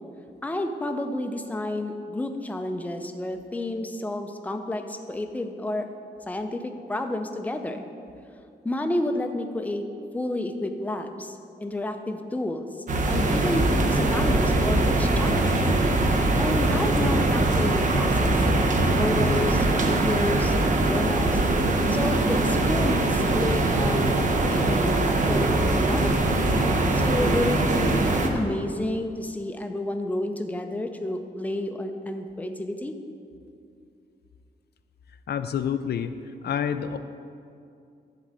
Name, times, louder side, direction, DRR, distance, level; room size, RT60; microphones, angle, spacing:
voice 1, 0.4-5.9 6.3-7.8 8.6-9.8 10.1-12.7 13.1-15.6 16.4-18.3 19.0-20.5 20.8-21.4 21.9-24.1 24.5-26.3 26.9-33.0, left 1 dB, 10° left, 5 dB, 0.5 m, -30 dB
sound 1, 12.9-28.3, right 2 dB, 45° right, 0.8 m, -22 dB
voice 2, 35.3-36.1 36.4-37.0, left 8 dB, 70° left, 10 dB, 0.4 m, -27 dB
11.5 x 3.8 x 7.5 m, 2.4 s
wide cardioid pair, 160°, 17 cm